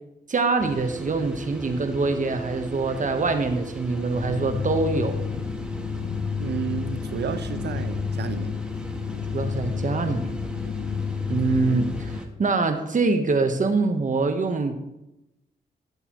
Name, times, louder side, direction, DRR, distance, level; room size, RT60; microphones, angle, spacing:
voice 1, 0.3-5.2 9.3-10.3 11.3-14.8, right 3 dB, 45° right, 7 dB, 1.1 m, -24 dB
sound 1, 0.6-12.3, right 1 dB, 5° right, 1.1 m, -37 dB
sound 2, 4.1-12.2, left 6 dB, 75° left, 0.6 m, -30 dB
voice 2, 6.4-8.5, right 7 dB, 75° right, 11 dB, 0.6 m, -32 dB
13.5 x 6.7 x 3.1 m, 0.93 s
cardioid pair, 75°, 18 cm